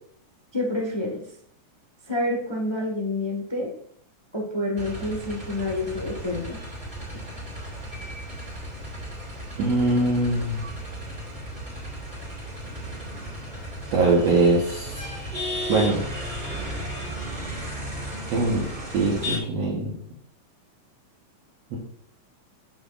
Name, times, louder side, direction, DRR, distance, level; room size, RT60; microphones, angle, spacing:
voice 1, 0.5-1.2 2.1-3.7 4.3-6.6, left 1 dB, 30° left, -1 dB, 0.4 m, -28 dB
sound 1, 4.8-19.4, equal, 20° right, 1.8 m, -35 dB
voice 2, 9.6-10.6 13.9-15.0 15.7-16.0 18.3-18.6 18.9-19.9 21.7-21.8, right 3 dB, 60° right, -4 dB, 2.2 m, -22 dB
13.0 x 5.1 x 2.6 m, 0.63 s
omnidirectional pair, 3.6 m